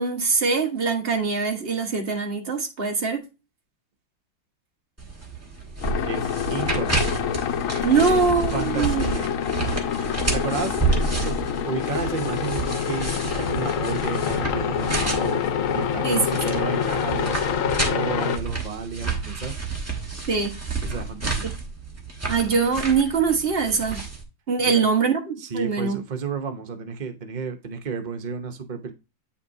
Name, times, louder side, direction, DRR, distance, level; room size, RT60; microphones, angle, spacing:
voice 1, 0.0-3.2 7.8-9.0 16.0-16.3 20.3-20.6 22.3-24.0 24.5-26.0, right 5 dB, 35° right, 1.3 m, -23 dB
sound 1, 5.0-24.2, right 3 dB, 10° right, 1.2 m, -30 dB
sound 2, 5.8-18.4, left 8 dB, 70° left, 0.7 m, -26 dB
voice 2, 6.0-7.2 7.9-8.2 8.5-9.3 10.3-15.4 15.7-19.6 20.8-21.5 24.6-24.9 25.4-28.9, right 5 dB, 90° right, 0.4 m, -32 dB
8.5 x 5.7 x 2.7 m
omnidirectional pair, 2.0 m